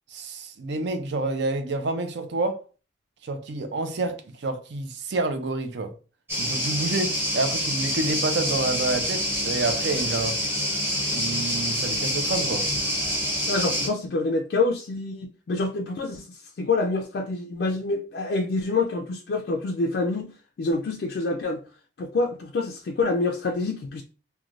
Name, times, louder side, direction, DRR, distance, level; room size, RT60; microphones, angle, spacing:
voice 1, 0.1-2.6 3.2-5.9 6.4-10.4 11.1-12.7, right 2 dB, 65° right, 0.4 m, -28 dB
sound 1, 6.3-13.9, equal, 10° right, 0.7 m, -26 dB
voice 2, 13.5-20.3 20.6-21.6 22.0-24.0, left 3 dB, 60° left, 0.3 m, -26 dB
3.1 x 2.2 x 2.5 m
head